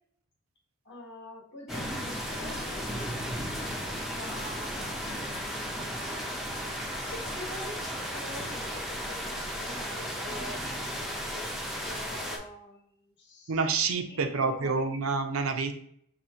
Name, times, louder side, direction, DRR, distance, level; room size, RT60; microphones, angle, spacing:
voice 1, 0.8-3.1 3.4-4.8 7.0-11.5 11.8-13.5 14.1-14.8, left 1 dB, 55° left, -1 dB, 1.0 m, -45 dB
sound 1, 1.7-12.4, equal, ahead, 0.4 m, -35 dB
voice 2, 13.5-15.8, right 4 dB, 75° right, 7 dB, 0.5 m, -28 dB
2.7 x 2.7 x 4.2 m, 0.66 s
head